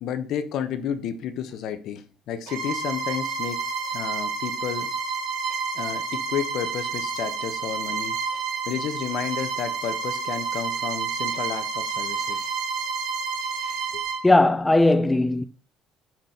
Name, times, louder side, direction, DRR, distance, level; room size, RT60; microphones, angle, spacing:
voice 1, 0.0-3.7 3.9-4.9 5.7-8.2 8.7-12.5 13.9-14.0, left 8 dB, 55° left, 1.1 m, -31 dB
Bowed string instrument, 2.5-14.3, right 5 dB, 85° right, 3.1 m, -29 dB
voice 2, 14.2-15.4, left 2 dB, 5° left, 0.3 m, -18 dB
6.7 x 6.1 x 5.7 m
cardioid pair, 170°, 0 cm